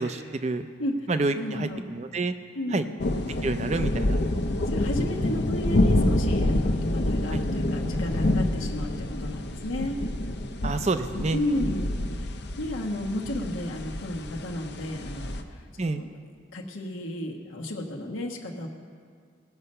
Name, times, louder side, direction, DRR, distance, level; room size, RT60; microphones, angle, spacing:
voice 1, 0.0-0.7 1.1-2.3 2.7-2.8 3.4-4.2 7.3-7.4 10.6-11.4 15.8-16.0, right 3 dB, 35° right, 10 dB, 0.5 m, -28 dB
voice 2, 1.3-1.9 2.5-3.0 3.3-3.5 4.7-10.0 11.3-12.3 12.6-15.6 15.9-16.1 16.5-18.7, left 1 dB, 90° left, 0 dB, 1.2 m, -33 dB
sound 1, 3.0-15.4, left 1 dB, 55° left, 0.7 m, -27 dB
19.0 x 6.7 x 5.5 m, 2.1 s
head